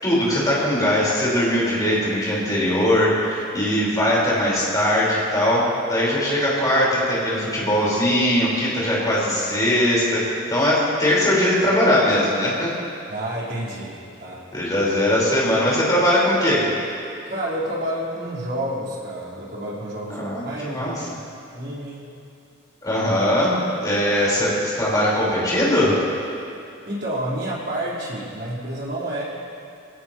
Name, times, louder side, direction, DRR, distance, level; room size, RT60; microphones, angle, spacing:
voice 1, 0.0-5.6 5.9-10.2 10.5-12.7 14.5-16.7 20.1-21.1 22.8-26.0, left 1 dB, 20° left, -7 dB, 4.7 m, -20 dB
voice 2, 13.1-14.4 17.2-20.9 21.5-22.1 26.9-29.2, right 1 dB, 50° right, -7 dB, 4.4 m, -29 dB
21.0 x 17.5 x 3.1 m, 2.6 s
head